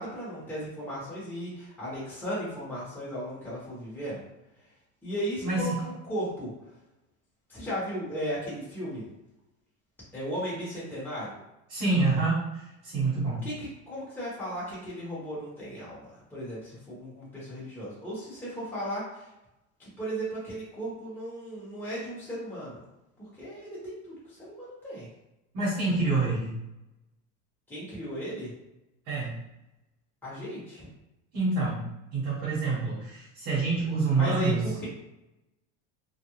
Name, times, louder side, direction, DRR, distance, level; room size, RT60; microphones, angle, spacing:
voice 1, 0.0-4.2 5.0-6.5 7.5-9.1 10.1-11.3 13.4-19.3 19.8-22.8 23.2-25.1 27.7-28.5 30.2-30.9 34.2-34.9, equal, 5° left, -9 dB, 1.0 m, -36 dB
voice 2, 11.7-13.4 25.5-26.6 29.1-29.4 31.3-31.9 32.1-34.6, right 3 dB, 45° right, -8 dB, 1.2 m, -27 dB
2.4 x 2.2 x 3.0 m, 0.93 s
supercardioid pair, 125°, 35 cm